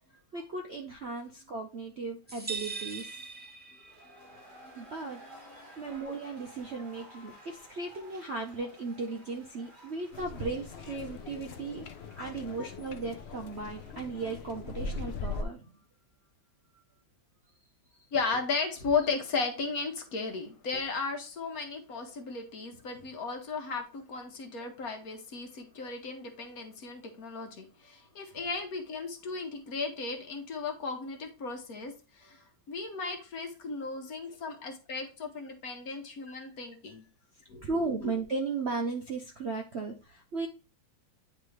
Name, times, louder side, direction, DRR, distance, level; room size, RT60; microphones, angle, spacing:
voice 1, 0.3-3.2 4.8-5.2 5.8-15.7 37.6-40.5, right 3 dB, 55° right, 2 dB, 0.7 m, -36 dB
sound 1, 2.3-4.2, right 4 dB, 10° right, 0.5 m, -40 dB
sound 2, 3.7-15.3, right 1 dB, 25° right, 2.1 m, -55 dB
voice 2, 4.6-5.1 5.5-5.8 12.2-12.3 12.6-12.7 18.1-37.1 37.5-37.6, left 4 dB, 55° left, 4 dB, 1.4 m, -35 dB
sound 3, 10.1-15.4, left 4 dB, 80° left, 0.5 m, -40 dB
9.8 x 3.3 x 3.2 m, 0.32 s
omnidirectional pair, 2.0 m